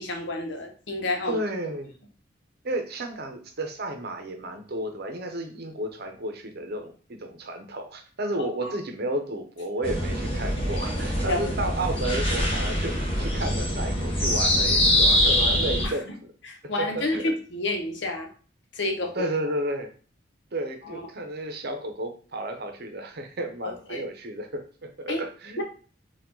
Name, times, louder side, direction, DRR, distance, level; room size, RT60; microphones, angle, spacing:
voice 1, 0.0-1.4 8.4-8.7 11.3-11.5 15.8-16.0 16.4-18.3 18.7-19.3 20.8-21.1 23.6-24.0 25.1-25.2 25.6-25.7, left 2 dB, 75° left, 4 dB, 0.9 m, -30 dB
voice 2, 1.3-1.9 2.6-16.1 16.6-17.2 19.1-19.9 20.5-25.6, right 1 dB, 60° right, 5 dB, 0.8 m, -32 dB
sound 1, 9.8-15.9, left 1 dB, 30° left, 1.1 m, -24 dB
4.7 x 2.4 x 3.8 m, 0.40 s
head